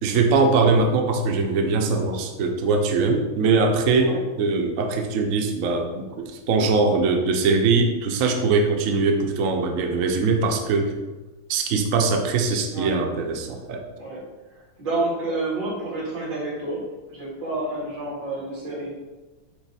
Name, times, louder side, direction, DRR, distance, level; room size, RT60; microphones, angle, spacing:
voice 1, 0.0-10.9 11.5-13.8, right 4 dB, 75° right, 3 dB, 0.7 m, -21 dB
voice 2, 14.8-16.8 17.1-19.0, right 2 dB, 60° right, -6 dB, 2.8 m, -29 dB
8.0 x 2.9 x 4.2 m, 1.2 s
omnidirectional pair, 2.3 m